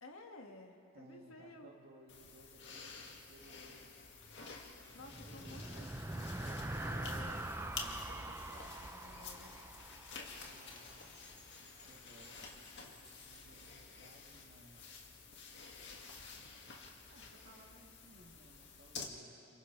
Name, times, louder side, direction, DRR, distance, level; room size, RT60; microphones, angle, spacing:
voice 1, 0.0-1.7 4.7-9.6, left 2 dB, 75° left, 2 dB, 2.0 m, -55 dB
voice 2, 0.9-3.9 4.8-6.0 10.4-11.1 11.9-14.9 17.1-19.6, right 1 dB, 50° right, -2 dB, 3.0 m, -61 dB
sound 1, 2.1-19.0, left 4 dB, 60° left, 2.1 m, -51 dB
sound 2, 5.0-10.7, right 1 dB, 15° right, 0.6 m, -43 dB
sound 3, 10.5-15.8, equal, 5° left, 3.4 m, -66 dB
29.5 x 27.5 x 3.4 m, 2.7 s
head